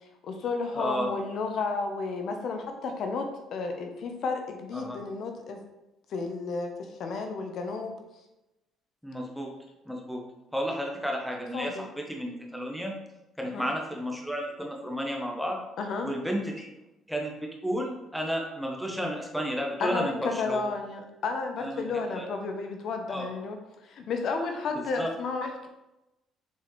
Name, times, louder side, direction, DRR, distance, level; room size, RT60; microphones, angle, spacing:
voice 1, 0.2-5.6 6.1-8.0 11.5-11.9 13.4-13.7 15.8-16.1 19.8-23.6 23.8-25.7, left 4 dB, 55° left, 4 dB, 0.7 m, -32 dB
voice 2, 0.7-1.1 4.7-5.0 9.0-9.5 9.9-10.2 10.5-12.9 13.4-15.6 16.0-16.7 17.1-20.6 21.6-21.9 22.1-22.3 23.1-23.3 25.0-25.1, equal, ahead, 0 dB, 0.9 m, -32 dB
7.1 x 4.2 x 3.1 m, 0.96 s
cardioid pair, 145°, 0 cm